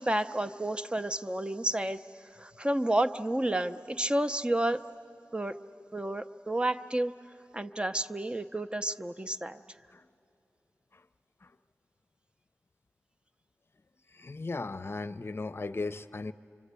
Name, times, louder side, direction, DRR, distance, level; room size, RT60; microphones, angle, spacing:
voice 1, 0.0-2.0 2.4-4.8 5.3-5.5 5.9-7.1 7.5-9.6, right 1 dB, 20° right, 10 dB, 0.7 m, -30 dB
voice 2, 14.1-16.3, left 3 dB, 50° left, 12 dB, 0.6 m, -37 dB
27.0 x 25.5 x 8.2 m, 2.9 s
wide cardioid pair, 75°, 5 cm